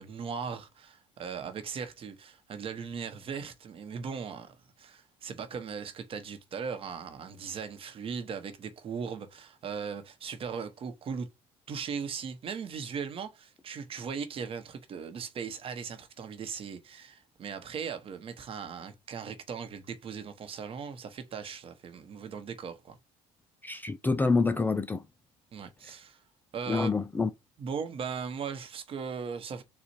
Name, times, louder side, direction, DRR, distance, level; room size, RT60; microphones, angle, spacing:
voice 1, 0.0-11.3 11.7-23.0 25.5-26.2 26.5-26.9 27.6-29.6, right 6 dB, 40° right, 1.0 m, -38 dB
voice 2, 23.6-25.0 26.7-27.3, left 4 dB, 15° left, 0.4 m, -27 dB
4.1 x 2.4 x 4.5 m
supercardioid pair, 95°, 14 cm